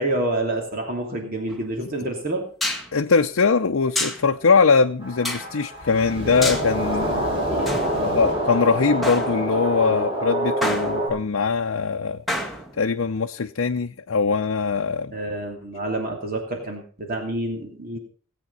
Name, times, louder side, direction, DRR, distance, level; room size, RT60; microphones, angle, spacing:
voice 1, 0.0-2.4 7.1-8.2 9.8-10.1 15.1-18.0, right 1 dB, 45° right, 2.8 m, -28 dB
sound 1, 1.5-1.6 2.6-2.9 3.9-4.3 5.2-5.5 6.4-6.7 7.7-8.5 9.0-9.7 10.6-11.3 12.3-12.9, left 1 dB, ahead, 1.9 m, -29 dB
voice 2, 2.9-7.3 8.0-12.2 12.8-15.1, left 5 dB, 85° left, 0.6 m, -21 dB
sound 2, 5.0-11.1, equal, 30° right, 5.9 m, -26 dB
18.0 x 8.6 x 5.6 m
head